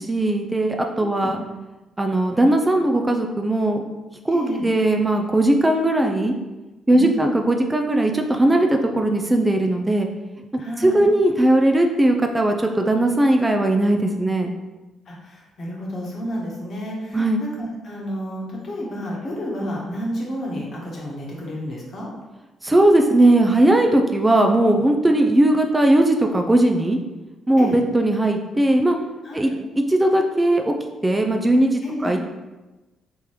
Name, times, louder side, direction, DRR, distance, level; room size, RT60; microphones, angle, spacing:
voice 1, 0.0-1.4 2.0-3.8 4.2-6.3 6.9-10.1 10.5-14.5 17.1-17.4 22.6-27.0 27.5-29.0 29.3-29.5 29.9-30.7 31.0-32.2, right 1 dB, 20° right, 3 dB, 0.4 m, -18 dB
voice 2, 1.0-1.3 4.3-4.7 6.9-7.4 10.6-11.0 15.1-22.1 27.6-27.8 29.2-29.6 31.8-32.1, equal, 55° left, -3 dB, 1.1 m, -31 dB
3.6 x 2.9 x 3.1 m, 1.1 s
hypercardioid pair, 50°, 0 cm